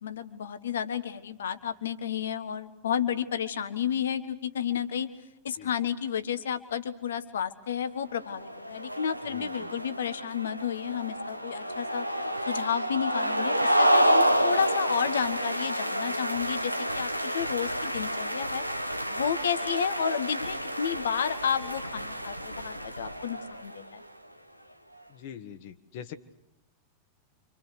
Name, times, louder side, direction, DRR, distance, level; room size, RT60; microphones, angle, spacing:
voice 1, 0.0-5.1 5.4-12.0 12.5-18.6 19.1-24.0, left 8 dB, 65° left, 11 dB, 1.5 m, -31 dB
sound 1, 8.2-23.9, equal, 90° right, 1.0 m, -29 dB
voice 2, 9.3-9.7 25.1-26.1, left 9 dB, 50° left, 10 dB, 1.8 m, -43 dB
29.5 x 26.0 x 6.6 m, 0.86 s
figure-of-eight pair, 90°, 0 cm